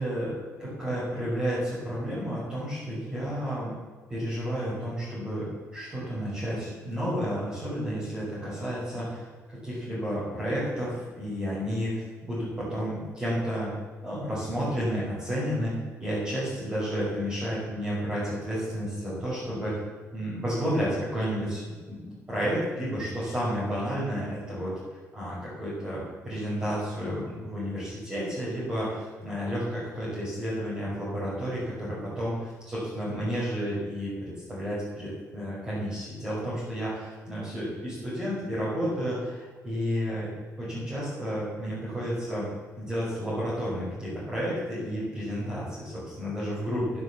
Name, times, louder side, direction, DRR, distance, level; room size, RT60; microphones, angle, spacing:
voice 1, 0.0-3.7 4.1-9.2 9.6-13.7 14.0-19.8 20.1-24.7 25.1-42.5 42.8-47.0, equal, 15° right, -11 dB, 5.7 m, -31 dB
12.5 x 11.0 x 7.3 m, 1.5 s
cardioid pair, 180°, 6 cm